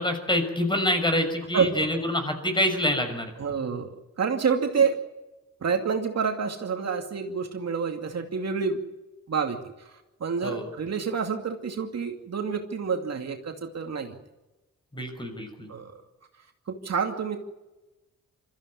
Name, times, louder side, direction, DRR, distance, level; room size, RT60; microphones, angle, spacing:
voice 1, 0.0-3.3 10.4-10.7 14.9-15.7, left 1 dB, 15° left, 6 dB, 6.2 m, -26 dB
voice 2, 1.5-1.9 3.4-5.0 5.6-8.8 9.3-9.9 10.2-14.1 15.7-15.9 16.7-17.4, right 6 dB, 60° right, 4 dB, 2.5 m, -28 dB
23.5 x 14.5 x 9.7 m, 1.1 s
cardioid pair, 70°, 29 cm